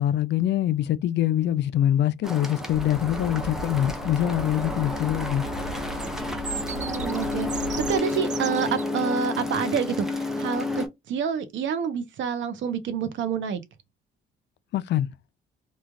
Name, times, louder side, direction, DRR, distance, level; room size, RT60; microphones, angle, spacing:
voice 1, 0.0-5.4 14.7-15.1, left 12 dB, 60° left, 0.4 m, -24 dB
sound 1, 2.2-10.9, left 2 dB, ahead, 0.7 m, -31 dB
sound 2, 2.7-8.0, equal, 85° left, 0.8 m, -38 dB
sound 3, 6.0-8.9, right 6 dB, 40° right, 0.6 m, -36 dB
voice 2, 6.7-13.6, right 7 dB, 75° right, 0.8 m, -28 dB
3.1 x 2.3 x 2.3 m
cardioid pair, 90°, 20 cm